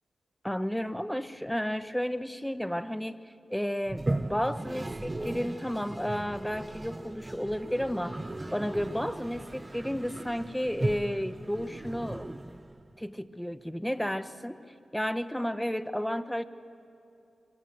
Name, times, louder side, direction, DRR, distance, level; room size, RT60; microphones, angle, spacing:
voice 1, 0.4-3.2 3.5-8.2 8.5-12.3 13.0-14.6 14.9-16.4, equal, 5° left, 12 dB, 1.1 m, -32 dB
Toilet flush, 3.9-13.0, right 2 dB, 25° right, 0.8 m, -37 dB
25.0 x 24.5 x 7.8 m, 2.7 s
cardioid pair, 55°, 0 cm